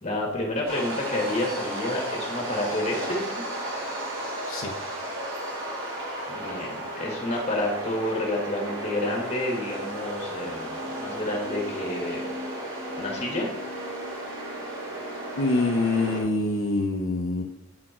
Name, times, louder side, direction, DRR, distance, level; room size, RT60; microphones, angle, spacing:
voice 1, 0.0-3.2 6.3-12.2 13.0-13.5, left 1 dB, 30° left, -1 dB, 1.7 m, -29 dB
sound 1, 0.7-16.2, right 1 dB, 75° right, 2.9 m, -34 dB
voice 2, 15.4-17.4, left 2 dB, 70° left, 1 dB, 0.7 m, -25 dB
8.6 x 4.4 x 4.3 m, 0.83 s
head